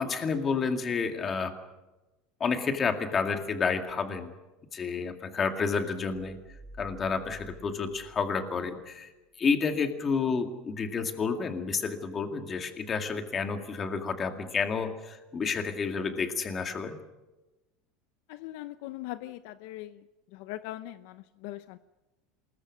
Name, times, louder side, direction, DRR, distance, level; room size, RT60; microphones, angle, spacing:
voice 1, 0.0-1.5 2.4-4.3 4.7-6.4 6.8-9.1 9.4-17.0, left 5 dB, 20° left, 6 dB, 2.1 m, -30 dB
sound 1, 6.4-8.9, left 1 dB, 25° right, 5.4 m, -51 dB
voice 2, 18.3-20.0 20.3-21.8, left 15 dB, 60° left, 12 dB, 0.8 m, -40 dB
27.5 x 21.5 x 6.4 m, 1.1 s
supercardioid pair, 170°, 0 cm